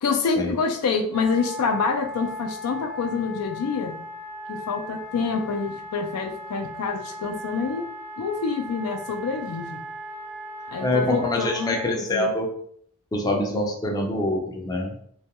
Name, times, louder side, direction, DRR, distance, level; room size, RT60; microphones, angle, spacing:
voice 1, 0.0-3.9 4.5-7.9 8.2-9.8 10.7-12.3, left 5 dB, 85° left, 5 dB, 0.4 m, -27 dB
Wind instrument woodwind instrument, 1.1-11.9, equal, 40° right, 0.5 m, -38 dB
voice 2, 10.8-12.5 13.1-15.1, left 1 dB, 15° left, 1 dB, 0.3 m, -25 dB
2.2 x 2.2 x 2.8 m, 0.63 s
head